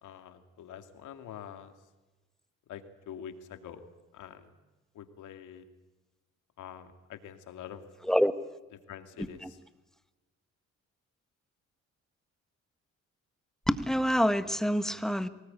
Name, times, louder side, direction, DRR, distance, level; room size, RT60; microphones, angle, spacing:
voice 1, 0.0-1.7 2.7-3.8 4.1-4.5 4.9-5.6 6.6-7.8 8.9-9.6, left 9 dB, 80° left, 8 dB, 2.4 m, -45 dB
voice 2, 13.7-15.3, equal, ahead, 11 dB, 1.4 m, -26 dB
23.5 x 19.5 x 8.7 m, 1.1 s
cardioid pair, 90°, 30 cm